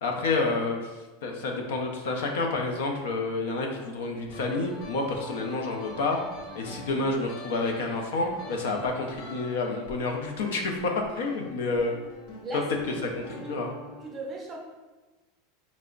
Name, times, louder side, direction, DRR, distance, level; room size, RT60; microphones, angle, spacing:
voice 1, 0.0-6.2 6.5-12.0 12.5-12.6 13.2-13.7, left 3 dB, 80° left, 2 dB, 0.5 m, -29 dB
sound 1, 3.8-14.0, left 1 dB, 45° left, 0.7 m, -45 dB
voice 2, 6.6-7.4 11.7-11.8 12.4-12.7 13.4-13.7 14.0-14.6, right 2 dB, 20° right, -1 dB, 0.5 m, -39 dB
3.3 x 2.0 x 3.7 m, 1.2 s
supercardioid pair, 160°, 0 cm